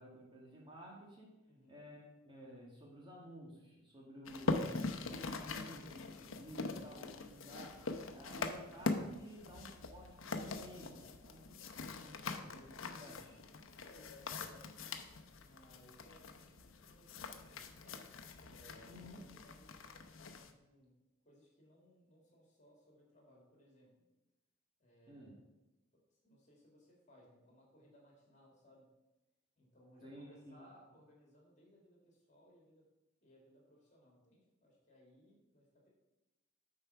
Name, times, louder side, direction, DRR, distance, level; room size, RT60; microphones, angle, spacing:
voice 1, 0.0-1.4 1.7-12.7 13.0-13.4 18.9-19.3 25.1-25.4 30.0-30.5, equal, 25° right, -3 dB, 1.7 m, -54 dB
voice 2, 1.5-1.8 12.2-13.0 13.9-14.7 15.4-18.0 18.4-20.1 20.4-20.9 21.2-23.9 24.8-25.4 26.2-28.9 29.6-32.8 33.2-35.9, equal, 35° left, -2 dB, 2.4 m, -64 dB
sound 1, 4.3-20.5, left 3 dB, 80° left, 0.7 m, -43 dB
8.3 x 4.5 x 5.7 m, 1.0 s
head